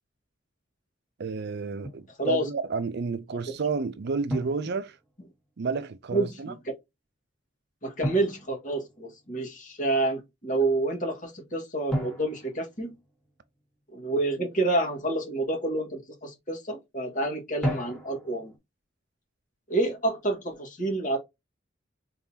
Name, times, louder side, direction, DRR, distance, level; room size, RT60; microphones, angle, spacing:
voice 1, 1.2-5.0 5.6-6.5, right 4 dB, 60° right, 0.5 m, -31 dB
Drum, 1.8-2.1 4.3-5.4 8.0-9.4 11.9-13.6 17.6-18.6, equal, 5° left, 1.5 m, -35 dB
voice 2, 2.2-2.5 6.1-6.7 7.8-13.0 13.9-18.5 19.7-21.2, right 2 dB, 45° left, 1.8 m, -28 dB
4.0 x 3.8 x 2.8 m
head